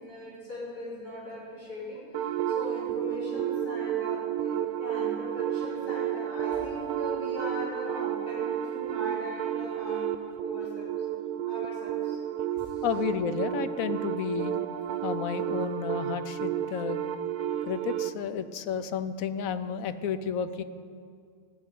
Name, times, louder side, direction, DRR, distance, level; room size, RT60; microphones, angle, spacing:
voice 1, 0.0-10.9 11.5-12.2 12.6-12.9, equal, 90° left, -10 dB, 5.4 m, -40 dB
sound 1, 2.1-18.1, right 10 dB, 85° right, 1.2 m, -31 dB
voice 2, 12.8-14.6 15.0-17.0 17.7-20.6, left 8 dB, 70° left, 12 dB, 1.0 m, -32 dB
16.0 x 6.7 x 9.3 m, 2.2 s
omnidirectional pair, 1.6 m